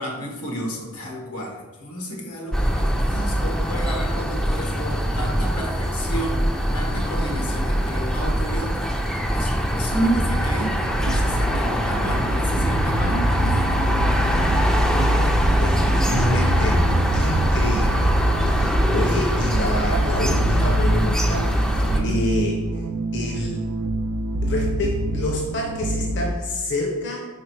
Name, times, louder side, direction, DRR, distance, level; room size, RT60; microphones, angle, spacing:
voice 1, 0.0-6.4 6.7-8.8 9.3-13.8 21.9-22.2, right 1 dB, 85° left, 1 dB, 1.3 m, -31 dB
sound 1, 2.5-22.0, equal, 5° left, 0.4 m, -23 dB
sound 2, 10.6-26.3, right 1 dB, 85° right, 0.4 m, -26 dB
voice 2, 15.1-16.8 17.1-18.2 18.5-22.8 23.1-23.6 24.4-27.3, left 1 dB, 55° left, -1 dB, 0.8 m, -28 dB
4.8 x 4.5 x 4.6 m, 1.2 s
head